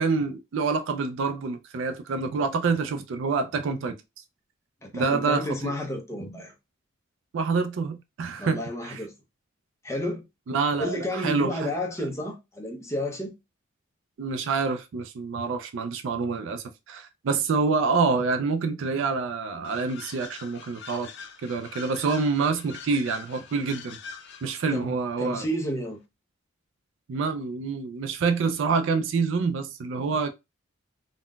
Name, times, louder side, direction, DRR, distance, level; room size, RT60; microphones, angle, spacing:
voice 1, 0.0-4.0 4.9-5.7 7.3-9.0 10.5-11.7 14.2-21.1 21.4-24.0 24.4-25.5 27.1-30.3, right 4 dB, 65° right, 0.4 m, -27 dB
voice 2, 4.8-6.5 8.4-9.1 9.8-10.2 10.8-13.3 24.7-26.0, equal, 15° left, 0.6 m, -31 dB
sound 1, 19.6-24.8, left 6 dB, 55° left, 0.5 m, -44 dB
3.7 x 2.1 x 2.3 m
head